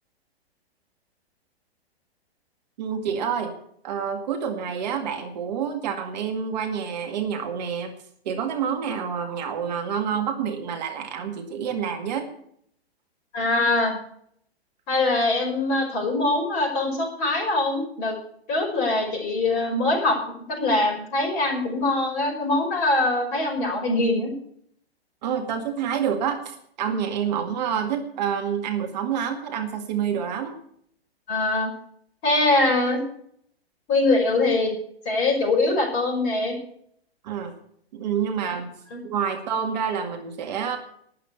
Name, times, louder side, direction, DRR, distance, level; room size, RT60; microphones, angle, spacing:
voice 1, 2.8-3.5 3.8-7.9 8.3-12.3 25.2-30.6 37.2-37.5 37.9-38.7 39.0-40.8, right 7 dB, 40° right, 5 dB, 2.1 m, -28 dB
voice 2, 13.3-13.9 14.9-18.1 18.5-20.2 20.5-24.3 26.9-27.0 31.3-31.7 32.2-33.0 33.9-34.7 35.0-36.6 38.9-39.0, left 2 dB, 30° left, 1 dB, 5.7 m, -23 dB
12.5 x 8.9 x 8.1 m, 0.66 s
figure-of-eight pair, 115°, 31 cm